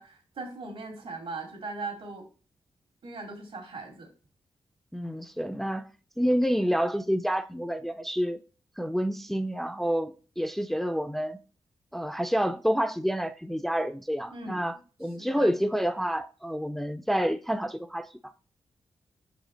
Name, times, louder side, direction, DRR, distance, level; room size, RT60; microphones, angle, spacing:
voice 1, 0.0-2.3 3.0-4.1 14.3-14.6 15.2-15.5, right 3 dB, 80° right, 2.4 m, -39 dB
voice 2, 4.9-5.8 6.2-8.4 8.8-11.4 11.9-18.3, equal, ahead, 0.4 m, -28 dB
6.4 x 5.1 x 3.8 m
wide cardioid pair, 120°, 9 cm